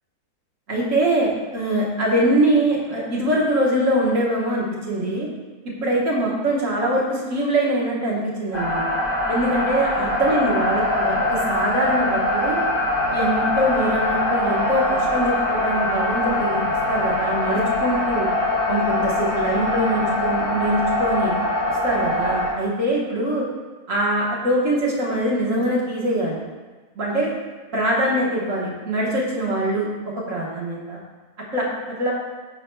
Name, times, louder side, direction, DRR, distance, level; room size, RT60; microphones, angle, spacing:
voice 1, 0.7-5.3 5.8-8.9 9.3-12.6 13.1-16.6 16.9-18.3 18.7-21.3 21.7-23.4 23.9-26.4 26.9-27.3 27.7-29.9 30.1-31.0 31.5-31.7 32.0-32.1, right 1 dB, 55° right, -5 dB, 1.6 m, -23 dB
sound 1, 8.5-22.5, left 1 dB, 30° left, 1.4 m, -23 dB
9.6 x 5.8 x 2.2 m, 1.3 s
omnidirectional pair, 1.6 m